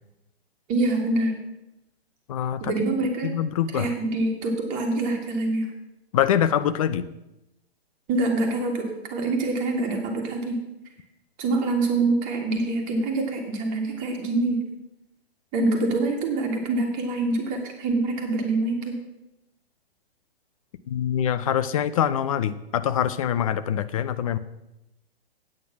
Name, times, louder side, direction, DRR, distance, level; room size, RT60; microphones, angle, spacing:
voice 1, 0.7-1.3 2.6-3.3 3.7-5.7 8.1-10.6 11.4-14.6 15.5-19.0, right 2 dB, 25° right, 2 dB, 2.0 m, -25 dB
voice 2, 2.3-2.6 3.3-3.9 6.1-7.1 20.9-24.4, left 9 dB, 35° left, 13 dB, 0.5 m, -24 dB
8.7 x 8.3 x 5.8 m, 0.91 s
figure-of-eight pair, 125°, 32 cm